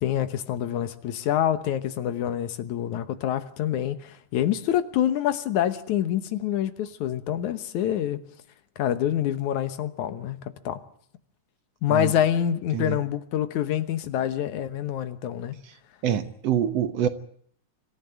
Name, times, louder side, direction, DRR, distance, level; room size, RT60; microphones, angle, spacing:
voice 1, 0.0-8.2 8.8-10.8 11.8-15.6, left 10 dB, 75° left, 2.5 m, -26 dB
voice 2, 16.0-17.1, right 9 dB, 65° right, 2.0 m, -26 dB
25.5 x 14.5 x 9.0 m
omnidirectional pair, 3.4 m